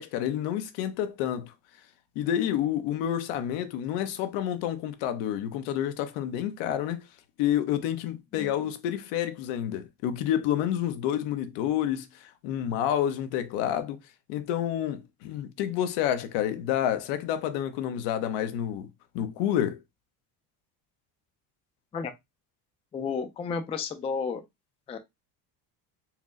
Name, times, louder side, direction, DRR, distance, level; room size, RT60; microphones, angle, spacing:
voice 1, 0.0-1.5 2.2-7.0 7.4-14.0 14.3-18.9 19.1-19.8, left 10 dB, 85° left, 0.8 m, -29 dB
voice 2, 22.9-24.4 24.9-25.0, left 5 dB, 15° left, 0.3 m, -32 dB
4.4 x 2.0 x 3.7 m
cardioid pair, 140°, 42 cm